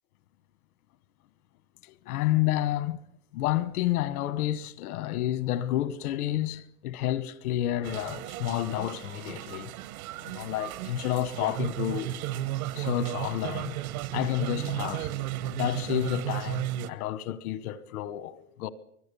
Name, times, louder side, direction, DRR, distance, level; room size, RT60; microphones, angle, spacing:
voice 1, 1.8-3.0 3.3-9.7 10.3-12.1 12.7-13.7 14.1-15.1 15.5-18.7, left 13 dB, 75° left, 1.4 m, -30 dB
sound 1, 7.8-16.9, right 13 dB, 75° right, 1.5 m, -34 dB
24.0 x 20.5 x 7.0 m
supercardioid pair, 155°, 44 cm